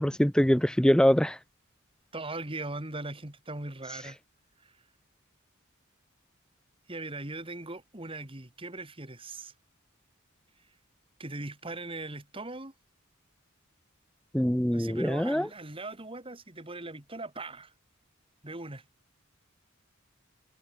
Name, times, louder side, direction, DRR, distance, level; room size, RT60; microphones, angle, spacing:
voice 1, 0.0-1.4 4.0-4.1 14.3-15.5, equal, 5° left, 0.6 m, -24 dB
voice 2, 2.1-4.2 6.9-9.5 11.2-12.7 14.7-17.7 18.4-18.8, right 2 dB, 25° right, 2.7 m, -39 dB
head